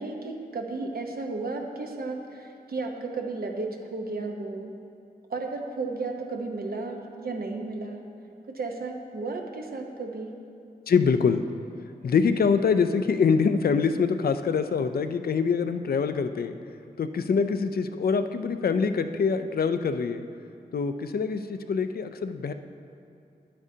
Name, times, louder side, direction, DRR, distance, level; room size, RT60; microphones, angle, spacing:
voice 1, 0.0-4.7 5.3-8.1 8.5-10.3, right 3 dB, 75° right, 2 dB, 0.9 m, -33 dB
voice 2, 10.9-11.5 12.0-16.6 17.0-20.2 20.7-22.5, left 5 dB, 75° left, 9 dB, 0.4 m, -24 dB
11.0 x 8.6 x 2.8 m, 2.8 s
wide cardioid pair, 100°, 16 cm